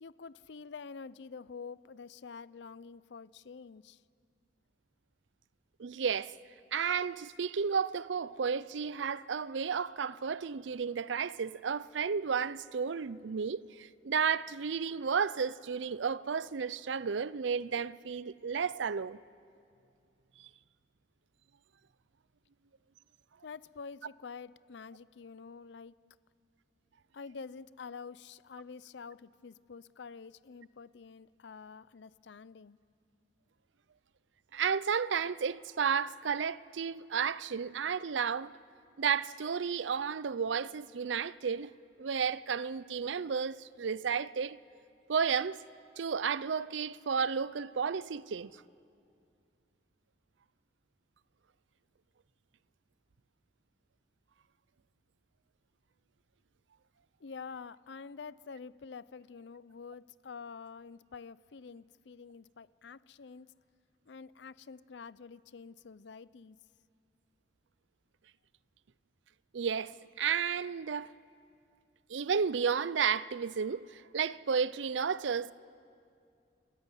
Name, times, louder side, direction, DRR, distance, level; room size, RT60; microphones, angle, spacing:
voice 1, 0.0-4.0 23.4-25.9 27.1-32.8 57.2-63.5 64.1-66.6, left 5 dB, 70° left, 0.5 m, -47 dB
voice 2, 5.8-6.4 6.7-19.2 20.4-20.5 34.5-38.5 39.0-41.7 42.0-44.6 45.1-45.6 46.0-48.5 69.5-71.1 72.1-75.5, right 6 dB, 80° right, 0.5 m, -32 dB
27.5 x 14.5 x 9.8 m
head